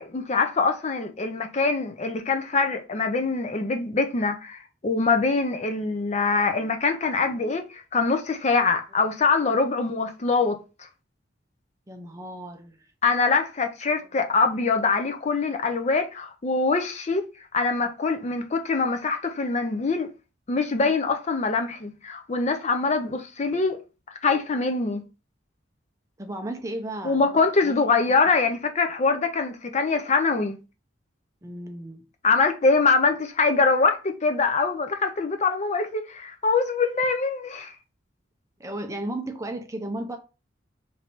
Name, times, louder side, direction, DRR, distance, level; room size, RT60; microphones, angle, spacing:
voice 1, 0.0-10.9 13.0-17.2 17.5-20.1 20.5-23.8 24.2-25.0 27.0-30.6 32.2-37.8, left 4 dB, 35° left, 0.4 m, -24 dB
voice 2, 11.9-12.9 14.0-14.2 26.2-27.8 31.4-32.0 38.6-40.2, right 1 dB, 15° right, 0.5 m, -35 dB
3.2 x 2.6 x 4.4 m
head